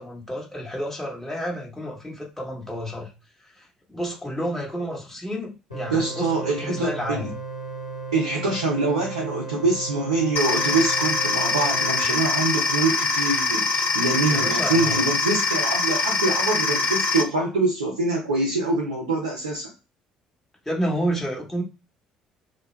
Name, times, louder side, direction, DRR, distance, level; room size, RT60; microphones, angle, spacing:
voice 1, 0.0-3.1 3.5-7.4 14.3-15.0 20.6-21.6, equal, 5° left, -2 dB, 1.1 m, -30 dB
sound 1, 5.7-12.1, right 4 dB, 90° left, 1.0 m, -35 dB
voice 2, 5.9-7.2 8.1-19.7, right 3 dB, 85° right, -3 dB, 0.5 m, -24 dB
sound 2, 10.4-17.2, left 3 dB, 50° left, 0.8 m, -23 dB
2.3 x 2.1 x 3.1 m, 0.30 s
figure-of-eight pair, 50°, 3 cm